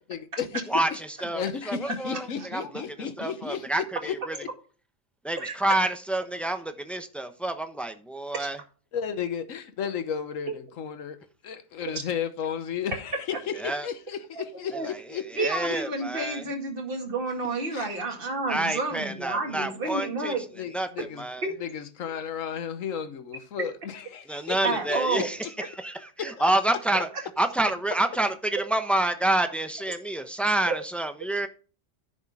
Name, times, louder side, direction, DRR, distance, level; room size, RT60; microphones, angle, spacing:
voice 1, 0.1-1.0 1.3-4.5 8.9-11.2 11.4-13.4 13.6-15.8 17.7-17.9 20.5-21.2 21.6-25.3 26.4-26.5, left 7 dB, 80° left, 1.4 m, -34 dB
voice 2, 0.7-4.4 5.2-8.6 13.6-13.9 14.8-15.0 15.3-16.4 18.5-20.3 20.7-21.4 24.3-25.4 25.7-27.1 27.4-31.5, right 1 dB, ahead, 0.8 m, -28 dB
voice 3, 5.4-5.7 8.4-8.5 10.5-10.6 11.9-12.0 14.4-14.9 15.4-20.4 24.6-25.3 28.6-28.7, right 3 dB, 45° right, 2.3 m, -30 dB
10.5 x 6.2 x 4.8 m
omnidirectional pair, 1.4 m